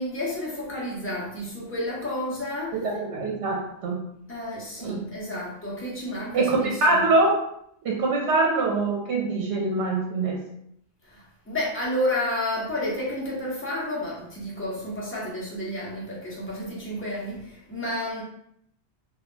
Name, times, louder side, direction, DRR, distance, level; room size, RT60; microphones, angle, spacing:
voice 1, 0.0-2.8 4.3-7.0 11.0-18.2, left 1 dB, 15° left, -6 dB, 0.5 m, -31 dB
voice 2, 2.7-4.0 4.8-5.0 6.3-7.4 7.8-10.4, right 3 dB, 80° right, -1 dB, 0.9 m, -24 dB
2.2 x 2.0 x 3.1 m, 0.72 s
omnidirectional pair, 1.2 m